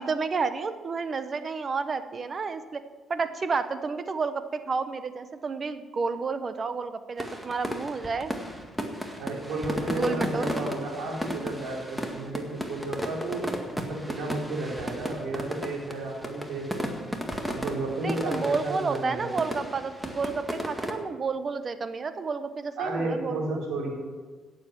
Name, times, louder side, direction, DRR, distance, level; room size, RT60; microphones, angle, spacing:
voice 1, 0.0-2.8 3.1-8.3 9.9-10.5 18.0-23.6, right 4 dB, 40° right, 11 dB, 0.9 m, -31 dB
sound 1, 7.2-20.9, equal, 5° right, 1.9 m, -34 dB
voice 2, 9.2-16.9 17.5-19.4 22.8-23.9, right 2 dB, 80° right, -3 dB, 4.2 m, -32 dB
17.0 x 7.5 x 6.0 m, 1.4 s
cardioid pair, 90°, 0 cm